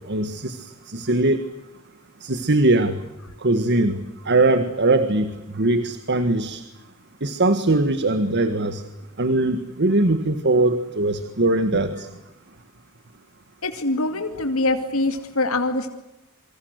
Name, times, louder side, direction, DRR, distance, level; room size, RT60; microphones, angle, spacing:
voice 1, 0.1-0.6 0.9-1.4 2.2-3.0 3.4-6.6 7.2-8.8 9.2-12.1, right 2 dB, 55° right, 11 dB, 1.7 m, -21 dB
voice 2, 13.6-15.9, left 2 dB, 75° left, 6 dB, 2.5 m, -23 dB
28.0 x 25.0 x 8.0 m, 0.95 s
head